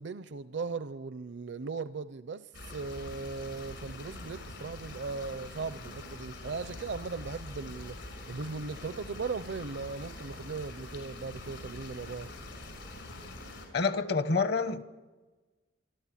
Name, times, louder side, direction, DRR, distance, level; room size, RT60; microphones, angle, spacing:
voice 1, 0.0-12.3, right 4 dB, 65° right, 0.6 m, -38 dB
sound 1, 2.5-13.7, left 2 dB, 75° left, 5.9 m, -44 dB
voice 2, 13.7-14.8, left 4 dB, 60° left, 1.3 m, -27 dB
27.0 x 12.5 x 9.9 m
head